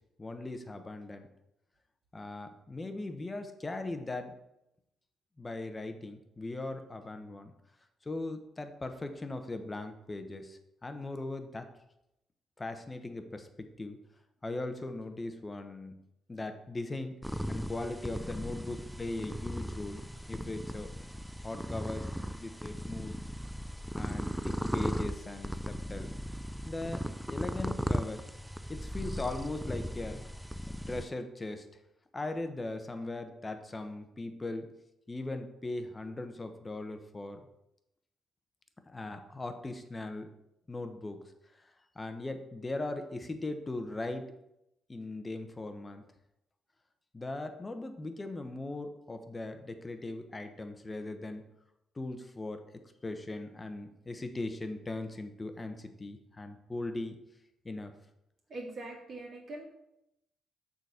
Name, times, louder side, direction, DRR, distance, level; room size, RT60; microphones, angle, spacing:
voice 1, 0.2-1.3 2.1-4.3 5.4-7.5 8.0-11.7 12.6-13.5 13.8-14.0 14.4-16.0 16.3-17.2 17.5-20.0 20.3-20.9 21.4-23.1 23.9-26.1 26.6-28.2 28.7-30.2 30.9-31.7 32.1-34.7 35.1-37.5 38.9-40.3 40.7-41.2 41.9-44.3 44.9-46.0 47.1-51.4 52.0-52.6 53.0-57.2 57.6-57.9, left 2 dB, 20° left, 7 dB, 0.9 m, -39 dB
sound 1, 17.2-31.1, equal, ahead, 0.4 m, -37 dB
voice 2, 58.5-59.6, right 2 dB, 55° right, -5 dB, 2.4 m, -42 dB
6.7 x 4.0 x 6.3 m, 0.85 s
cardioid pair, 90°, 0 cm